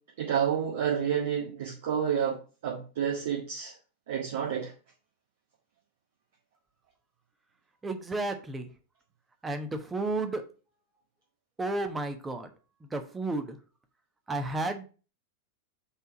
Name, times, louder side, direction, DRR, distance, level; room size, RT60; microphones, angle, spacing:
voice 1, 0.2-2.4 2.6-3.7 4.1-4.7, right 8 dB, 55° right, -4 dB, 1.7 m, -29 dB
voice 2, 7.8-8.7 9.4-10.4 11.6-12.5 12.9-13.5 14.3-14.8, right 2 dB, 10° right, 7 dB, 1.0 m, -32 dB
5.5 x 3.9 x 5.9 m, 0.35 s
figure-of-eight pair, 90°, 0 cm